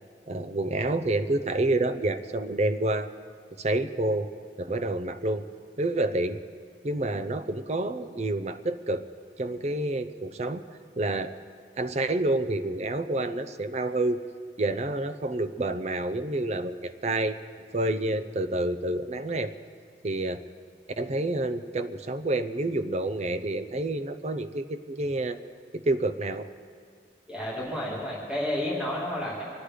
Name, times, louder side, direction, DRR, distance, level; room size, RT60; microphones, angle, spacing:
voice 1, 0.3-3.1 3.6-4.3 4.6-5.5 5.8-6.4 6.8-9.0 9.4-10.6 11.0-11.3 11.8-14.2 14.6-17.4 17.7-19.5 20.0-20.4 21.0-25.4 25.7-26.5, right 2 dB, 35° right, 9 dB, 0.6 m, -28 dB
voice 2, 27.3-29.4, left 1 dB, 5° right, -5 dB, 2.4 m, -31 dB
23.5 x 9.6 x 5.0 m, 2.1 s
head